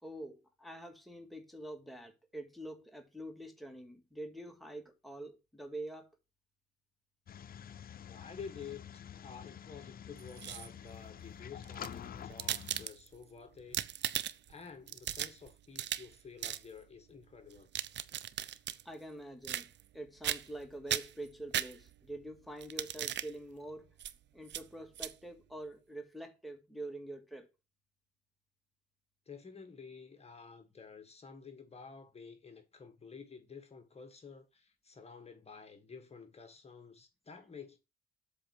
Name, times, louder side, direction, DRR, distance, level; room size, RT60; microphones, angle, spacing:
voice 1, 0.0-6.1 18.9-23.9 24.3-27.5, right 1 dB, ahead, 2.0 m, -46 dB
sound 1, 7.3-12.9, left 9 dB, 50° left, 0.6 m, -48 dB
voice 2, 8.1-13.8 14.5-17.7 29.2-37.8, left 5 dB, 30° left, 1.6 m, -51 dB
sound 2, 10.2-10.9 11.6-13.2 13.6-14.5 14.9-16.1 16.4-16.6 17.5-18.8 19.4-20.0 20.2-20.6 20.9-22.1 22.6-23.3 24.0-24.1 24.5-24.6 25.0-25.1, right 11 dB, 65° right, 0.7 m, -37 dB
7.8 x 4.0 x 6.4 m
cardioid pair, 90°, 20 cm